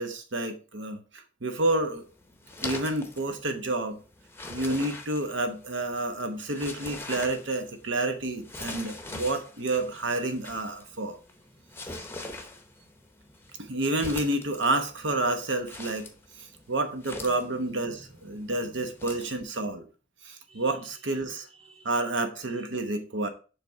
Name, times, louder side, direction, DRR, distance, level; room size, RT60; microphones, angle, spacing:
voice 1, 0.0-2.0 2.6-4.0 4.5-11.2 13.6-16.1 16.4-19.9 20.2-21.5 21.8-23.3, right 2 dB, 70° right, 1.0 m, -29 dB
sound 1, 1.6-19.4, left 2 dB, 10° left, 0.8 m, -43 dB
voice 2, 11.5-12.0 13.2-13.5 17.2-19.0 20.5-22.1 22.5-22.6, right 2 dB, 30° right, 1.6 m, -56 dB
6.7 x 3.5 x 4.6 m
head